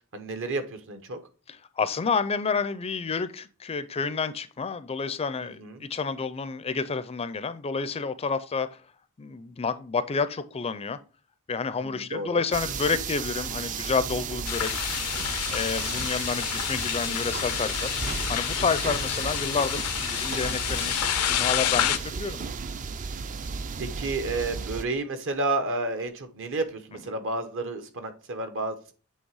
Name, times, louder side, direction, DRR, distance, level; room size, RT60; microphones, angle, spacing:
voice 1, 0.1-1.2 5.4-5.8 11.8-12.4 20.8-21.0 23.8-28.9, right 2 dB, 60° right, 1.0 m, -31 dB
voice 2, 1.5-8.8 9.2-11.0 11.5-14.8 15.5-17.9 18.3-21.0 21.3-22.4, left 5 dB, 25° left, 0.4 m, -29 dB
sound 1, 12.5-24.8, right 5 dB, 35° right, 0.4 m, -34 dB
sound 2, 14.4-22.0, left 12 dB, 80° left, 0.5 m, -29 dB
7.9 x 3.3 x 4.7 m
head